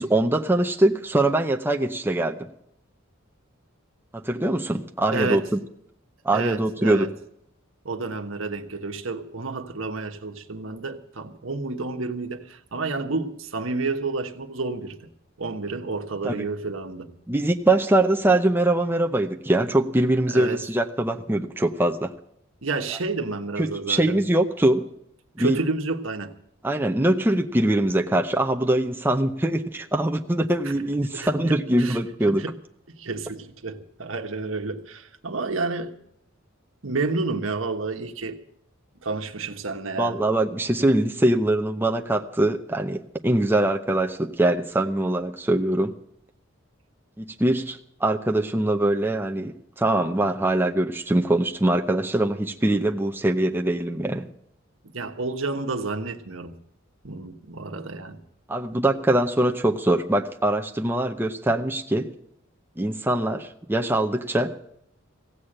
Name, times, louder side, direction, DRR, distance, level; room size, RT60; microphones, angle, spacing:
voice 1, 0.0-2.4 4.1-5.6 6.2-7.1 16.2-16.4 17.3-22.1 23.6-24.9 25.4-25.6 26.6-32.4 40.0-45.9 47.2-54.3 58.5-62.1 62.8-64.6, right 1 dB, 10° right, 0.7 m, -23 dB
voice 2, 5.1-5.4 6.3-7.1 7.8-15.0 15.4-17.1 20.3-20.6 22.6-24.2 25.4-26.3 30.6-30.7 31.1-32.0 32.3-32.5 33.0-35.9 36.8-38.4 39.0-40.2 54.8-56.5 57.0-58.2, right 3 dB, 70° right, 1.3 m, -30 dB
16.0 x 8.3 x 8.8 m
head